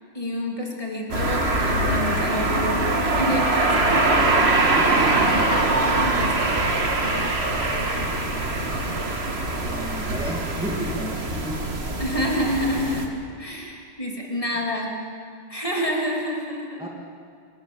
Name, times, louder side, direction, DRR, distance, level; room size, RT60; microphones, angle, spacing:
voice 1, 0.1-4.6 5.7-6.6 12.0-13.1 13.4-15.0 15.5-16.9, equal, 15° left, -1 dB, 3.3 m, -28 dB
sound 1, 1.1-13.0, right 2 dB, 30° right, 1.9 m, -23 dB
voice 2, 9.6-11.7 16.8-16.9, right 1 dB, ahead, -3 dB, 2.1 m, -32 dB
25.5 x 19.0 x 7.3 m, 2.2 s
omnidirectional pair, 2.3 m